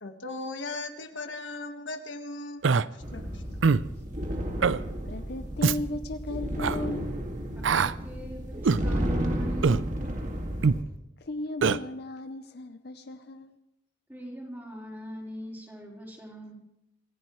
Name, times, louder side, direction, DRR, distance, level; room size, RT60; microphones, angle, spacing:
voice 1, 0.0-2.7 3.1-3.6, left 2 dB, 75° left, 5 dB, 1.5 m, -38 dB
Human voice, 2.6-2.8 3.6-3.9 4.6-4.8 5.6-5.8 6.6-6.8 7.6-7.9 8.6-8.8 9.6-9.8 10.6-10.8 11.6-11.8, right 5 dB, 80° right, 0.5 m, -22 dB
sound 1, 3.0-10.8, equal, 40° right, 2.1 m, -33 dB
voice 2, 5.1-7.2 11.2-13.6, left 2 dB, 55° left, 8 dB, 0.7 m, -36 dB
voice 3, 7.5-9.9 14.1-16.5, equal, 10° right, -3 dB, 4.3 m, -41 dB
26.5 x 15.5 x 3.2 m, 0.84 s
head